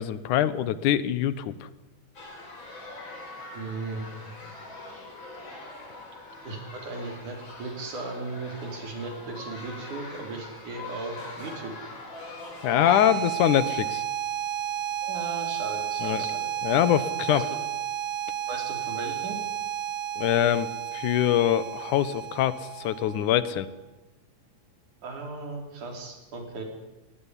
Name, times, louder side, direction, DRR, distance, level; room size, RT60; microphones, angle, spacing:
voice 1, 0.0-1.5 12.6-14.0 16.0-16.3 16.6-17.4 20.2-23.7, left 11 dB, 85° left, 16 dB, 2.6 m, -24 dB
sound 1, 2.1-13.2, left 2 dB, 40° left, 5.2 m, -43 dB
voice 2, 3.5-4.1 6.5-11.7 15.0-16.5 17.3-17.6 18.5-19.4 25.0-26.6, right 3 dB, 80° right, 3 dB, 5.5 m, -36 dB
sound 2, 12.6-23.6, right 10 dB, 60° right, 1.4 m, -32 dB
19.5 x 19.0 x 9.9 m, 1.1 s
omnidirectional pair, 3.5 m